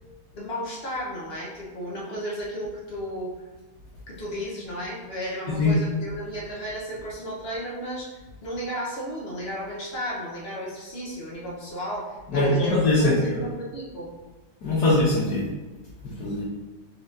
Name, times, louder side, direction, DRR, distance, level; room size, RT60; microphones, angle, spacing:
voice 1, 0.3-3.3 4.1-14.1, equal, 45° left, -4 dB, 1.0 m, -34 dB
voice 2, 12.3-13.4 14.6-15.4 16.2-16.4, left 2 dB, 85° left, -8 dB, 1.4 m, -21 dB
4.1 x 3.2 x 2.7 m, 1.2 s
omnidirectional pair, 1.7 m